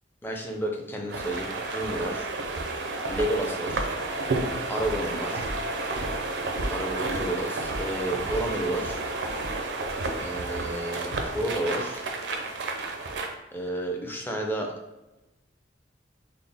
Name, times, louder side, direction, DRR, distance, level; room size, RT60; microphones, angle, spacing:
voice 1, 0.2-2.3 3.1-3.9 4.7-5.5 6.7-9.0 10.1-12.0 13.5-14.7, right 1 dB, 10° left, 1 dB, 0.4 m, -31 dB
sound 1, 1.1-13.3, right 2 dB, 75° right, 0.5 m, -31 dB
3.9 x 2.0 x 3.4 m, 0.99 s
head